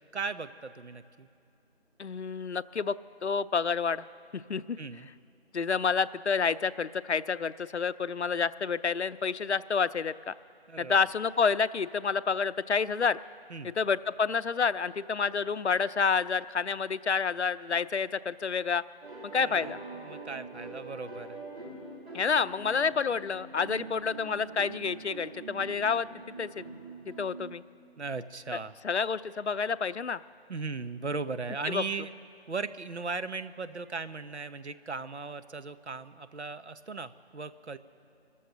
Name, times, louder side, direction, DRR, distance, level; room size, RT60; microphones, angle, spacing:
voice 1, 0.1-1.3 4.8-5.1 10.7-11.0 13.5-13.7 19.4-21.4 28.0-28.7 30.5-32.1 32.5-37.8, right 4 dB, 85° right, 12 dB, 0.9 m, -37 dB
voice 2, 2.0-2.9 3.2-4.0 4.3-4.8 5.5-10.3 10.8-13.2 13.6-18.8 19.2-19.8 22.1-26.1 26.4-26.6 27.1-27.6 28.8-30.2 31.7-31.8, left 5 dB, 85° left, 15 dB, 0.6 m, -29 dB
sound 1, 19.0-27.5, right 2 dB, 65° right, 4.4 m, -44 dB
26.5 x 14.0 x 2.9 m, 2.5 s
figure-of-eight pair, 175°, 33 cm